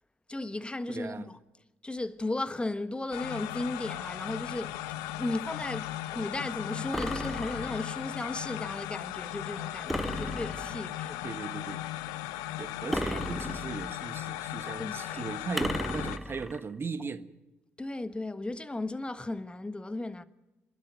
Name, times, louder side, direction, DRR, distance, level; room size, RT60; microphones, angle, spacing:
voice 1, 0.3-1.4 1.8-4.8 5.2-11.2 13.1-13.2 14.8-15.3 17.8-20.2, left 2 dB, 15° left, 1.3 m, -35 dB
voice 2, 0.9-1.3 11.2-11.8 12.6-17.3, right 5 dB, 40° right, 1.4 m, -38 dB
sound 1, 3.1-16.2, left 14 dB, 75° left, 0.7 m, -37 dB
sound 2, 6.9-8.0 9.9-11.0 12.9-14.0 15.6-16.6, equal, ahead, 0.9 m, -35 dB
26.0 x 11.5 x 9.2 m
hypercardioid pair, 50°, 6 cm